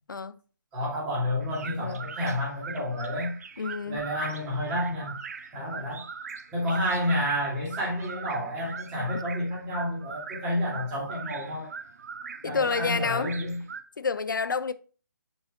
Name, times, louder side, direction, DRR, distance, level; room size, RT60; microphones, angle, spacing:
voice 1, 0.1-0.4 1.8-2.0 3.6-4.0 12.4-13.4 14.0-14.7, left 5 dB, 70° left, 0.5 m, -29 dB
voice 2, 0.7-3.3 3.9-5.2 5.5-6.0 6.5-11.7 12.4-13.6, left 1 dB, 15° right, 2.4 m, -30 dB
sound 1, 1.4-13.8, right 5 dB, 50° right, 0.6 m, -41 dB
5.3 x 4.7 x 3.9 m
figure-of-eight pair, 145°, 11 cm